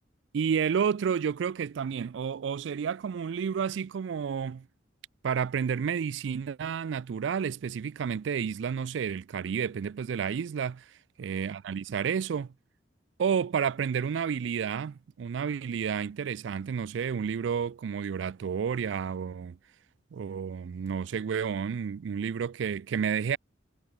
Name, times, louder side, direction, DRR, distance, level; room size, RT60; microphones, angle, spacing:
voice 1, 0.3-4.7 5.2-10.8 11.2-12.5 13.2-19.6 20.1-23.4, right 7 dB, 70° right, 0.4 m, -30 dB
head